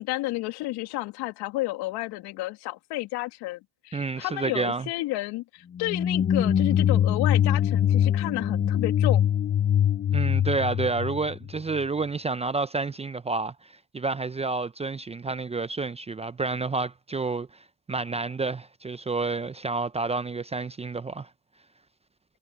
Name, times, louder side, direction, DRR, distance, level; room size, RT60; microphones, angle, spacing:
voice 1, 0.0-9.3, left 19 dB, 70° left, 2.7 m, -31 dB
voice 2, 3.9-4.9 10.1-17.5 17.9-21.3, right 3 dB, 15° right, 0.7 m, -29 dB
sound 1, 5.8-11.8, left 10 dB, 25° left, 0.7 m, -23 dB
supercardioid pair, 90°, 42 cm